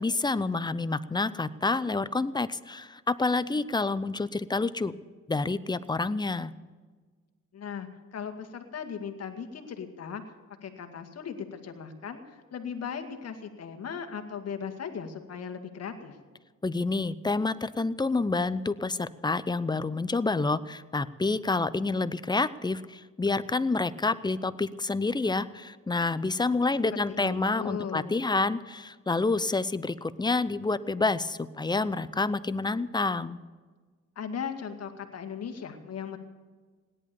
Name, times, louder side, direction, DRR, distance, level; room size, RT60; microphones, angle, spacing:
voice 1, 0.0-4.9 5.3-6.5 16.6-33.4, left 3 dB, 15° left, 15 dB, 0.6 m, -28 dB
voice 2, 7.5-10.2 10.6-16.2 26.9-28.2 34.2-36.2, left 7 dB, 55° left, 6 dB, 2.1 m, -38 dB
17.5 x 11.0 x 6.9 m, 1.4 s
cardioid pair, 90°, 30 cm